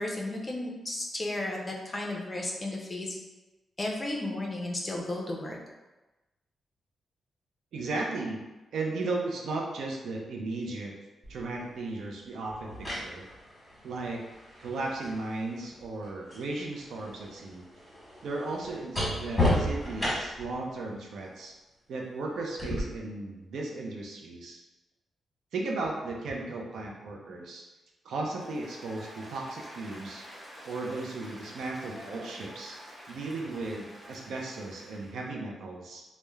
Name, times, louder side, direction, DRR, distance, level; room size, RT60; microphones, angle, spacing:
voice 1, 0.0-3.2 3.8-5.6, left 1 dB, 25° left, -1 dB, 0.4 m, -34 dB
voice 2, 7.7-8.4 8.7-10.9 11.3-13.2 13.8-14.2 14.6-17.6 18.2-21.5 21.9-24.6 25.5-27.6 28.0-30.2 30.7-32.8 33.1-36.0, right 2 dB, 80° right, -1 dB, 0.4 m, -35 dB
sound 1, 11.2-11.4 12.5-16.5 16.8-20.5 22.6-22.8, left 1 dB, 5° left, 1.0 m, -33 dB
Applause, 28.2-35.2, equal, 25° right, 1.1 m, -48 dB
3.0 x 2.0 x 2.3 m, 1.1 s
wide cardioid pair, 140°, 0 cm